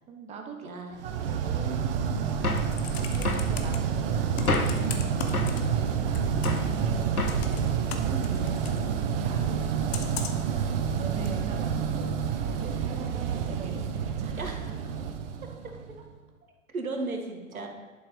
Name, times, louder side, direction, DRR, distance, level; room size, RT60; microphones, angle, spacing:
voice 1, 0.1-2.8 3.1-7.3 7.7-14.5 17.5-17.7, right 4 dB, 15° right, 2 dB, 1.2 m, -42 dB
voice 2, 0.6-1.0 2.9-3.4 8.2-8.6 14.3-14.6 15.4-15.7 16.4-17.7, right 3 dB, 75° right, 3 dB, 1.9 m, -37 dB
sound 1, 1.0-16.0, right 7 dB, 40° right, 1.1 m, -29 dB
Computer keyboard, 2.3-3.8 4.3-5.9 6.1-6.7 7.2-8.8 9.9-10.5 11.2-11.3, left 8 dB, 45° left, 1.4 m, -38 dB
sound 2, 2.4-2.8 3.2-3.5 4.5-4.9 5.3-5.6 6.4-6.7 7.2-7.5, left 3 dB, 85° left, 1.1 m, -29 dB
11.0 x 7.3 x 5.2 m, 1.4 s
figure-of-eight pair, 105°, 43 cm